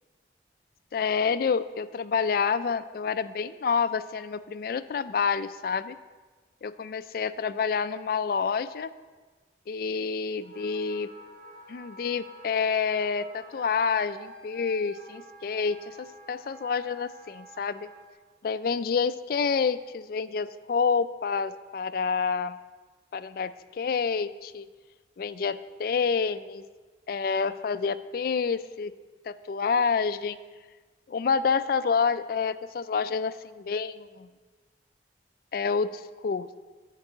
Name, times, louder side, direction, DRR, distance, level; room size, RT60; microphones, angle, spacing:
voice 1, 0.9-6.0 6.6-8.9 9.7-11.1 11.7-16.0 16.3-17.9 18.4-22.6 23.1-24.7 25.2-26.6 27.1-28.9 29.3-30.4 31.1-34.3 35.5-36.5, left 5 dB, 55° left, 14 dB, 0.3 m, -28 dB
Wind instrument woodwind instrument, 10.4-18.1, right 2 dB, 50° right, 1.7 m, -49 dB
9.6 x 4.7 x 7.9 m, 1.4 s
head